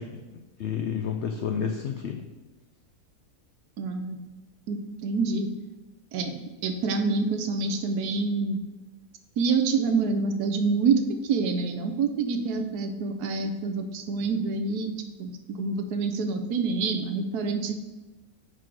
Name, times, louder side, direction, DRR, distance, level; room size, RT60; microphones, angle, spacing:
voice 1, 0.0-2.3, left 7 dB, 80° left, 4 dB, 0.6 m, -31 dB
voice 2, 3.8-4.2 4.7-5.5 6.1-8.6 9.4-14.9 15.2-17.7, right 4 dB, 75° right, 6 dB, 1.2 m, -27 dB
4.8 x 4.7 x 6.0 m, 1.1 s
omnidirectional pair, 1.7 m